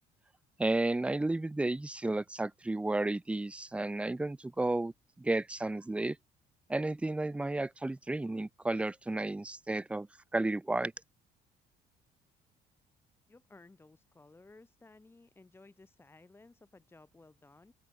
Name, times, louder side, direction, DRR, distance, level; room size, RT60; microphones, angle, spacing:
voice 1, 0.6-4.9 5.2-6.2 6.7-10.1 10.3-10.9, right 2 dB, 5° right, 0.4 m, -32 dB
voice 2, 13.3-17.7, left 2 dB, 15° left, 1.6 m, -58 dB
open air
cardioid pair, 110°, 17 cm